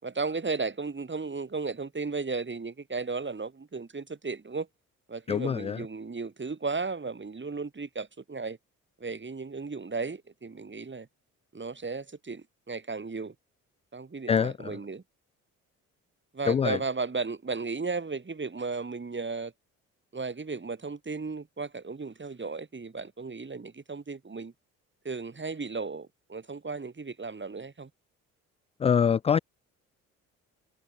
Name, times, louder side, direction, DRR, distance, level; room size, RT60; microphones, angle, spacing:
voice 1, 0.0-4.7 5.1-8.6 9.0-11.1 11.5-13.3 13.9-15.0 16.3-19.5 20.1-24.5 25.0-27.9, right 4 dB, 25° right, 7.7 m, -35 dB
voice 2, 5.3-5.8 14.3-14.8 16.5-16.8 28.8-29.4, left 7 dB, 15° left, 0.4 m, -25 dB
figure-of-eight pair, 45°, 42 cm